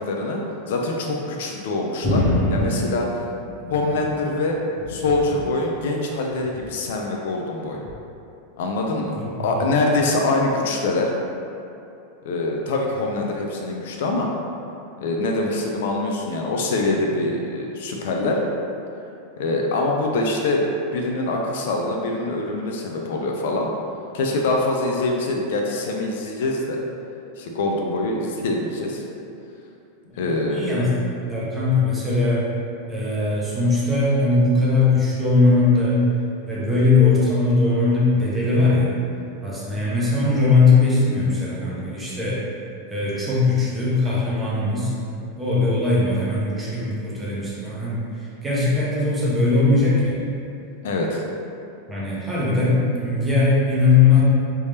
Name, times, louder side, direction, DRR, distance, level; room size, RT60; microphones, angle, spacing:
voice 1, 0.1-2.2 2.5-3.1 3.7-4.6 4.9-7.8 8.6-11.1 12.2-14.3 15.0-18.4 19.4-20.7 20.9-23.7 24.1-26.8 27.4-29.0 30.2-30.6 50.8-51.2, left 2 dB, 60° left, 0 dB, 0.4 m, -24 dB
sound 1, 2.0-4.3 4.6-5.6 6.4-6.8 7.8-8.0, left 1 dB, 20° left, 1.1 m, -26 dB
voice 2, 30.5-30.9 31.3-32.4 32.9-36.0 36.5-38.9 39.4-42.4 42.9-44.9 45.4-50.2 51.9-54.2, left 3 dB, 10° right, -8 dB, 0.6 m, -20 dB
3.3 x 2.8 x 3.3 m, 2.7 s
supercardioid pair, 180°, 0 cm